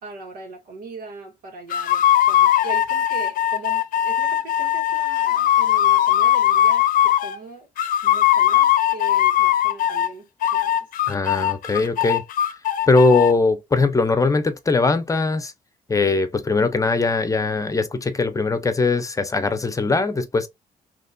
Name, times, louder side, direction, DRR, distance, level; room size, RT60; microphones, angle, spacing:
voice 1, 0.0-7.7 8.0-10.9, right 3 dB, 85° right, 1.7 m, -40 dB
sound 1, 1.7-7.4 7.8-10.1 10.4-13.3, left 11 dB, 80° left, 0.6 m, -19 dB
voice 2, 11.1-12.2 12.9-15.5 15.9-20.5, left 3 dB, 25° left, 0.7 m, -20 dB
4.0 x 3.0 x 2.3 m
cardioid pair, 95°, 14 cm